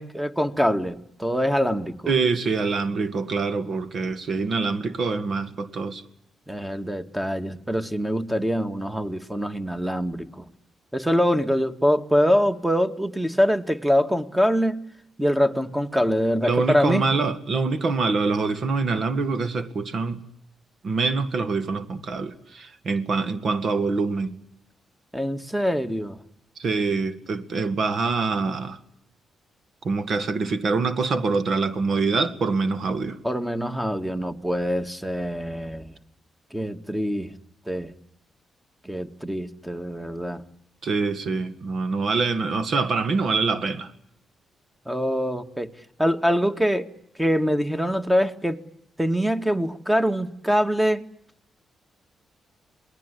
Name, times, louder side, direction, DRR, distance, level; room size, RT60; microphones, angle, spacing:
voice 1, 0.0-2.1 6.5-10.5 10.9-14.8 15.2-17.0 25.1-26.2 33.2-35.9 36.5-37.3 37.7-37.9 38.8-40.4 44.9-45.7 46.0-46.9 47.2-48.6 49.0-51.1, equal, 10° right, 2.1 m, -24 dB
voice 2, 2.1-6.0 16.4-20.2 20.8-24.4 26.6-28.8 29.8-33.2 40.8-43.9, right 4 dB, 60° right, 2.1 m, -25 dB
27.0 x 20.0 x 9.9 m
supercardioid pair, 55°, 0 cm